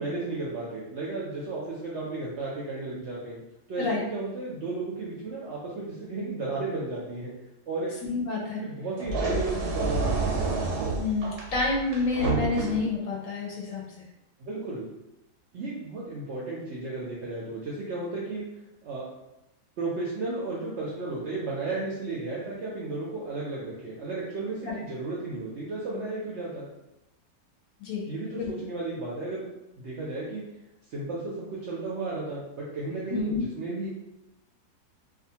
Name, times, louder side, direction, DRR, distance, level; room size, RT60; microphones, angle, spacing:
voice 1, 0.0-3.4 3.7-7.3 7.7-8.0 8.6-10.4 14.4-14.9 15.5-18.5 18.8-19.1 19.8-26.7 28.0-29.5 29.8-30.4 30.9-33.9, right 3 dB, 70° right, -5 dB, 0.7 m, -34 dB
voice 2, 8.0-8.6 11.0-13.8 27.8-28.5 33.1-33.5, left 4 dB, 65° left, -2 dB, 0.9 m, -29 dB
sound 1, 9.0-13.0, right 3 dB, 90° right, 1.1 m, -29 dB
2.5 x 2.4 x 2.7 m, 0.92 s
omnidirectional pair, 1.6 m